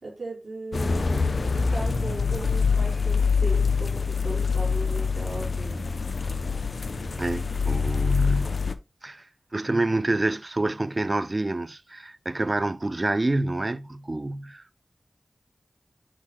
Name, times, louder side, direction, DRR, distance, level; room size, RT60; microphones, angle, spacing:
voice 1, 0.0-5.8, right 2 dB, 65° right, 4.2 m, -37 dB
sound 1, 0.7-8.7, left 5 dB, 75° left, 0.5 m, -25 dB
voice 2, 7.2-8.6 9.0-9.3 9.5-14.6, right 2 dB, 40° right, 0.5 m, -27 dB
8.8 x 6.3 x 2.2 m
wide cardioid pair, 60°, 0 cm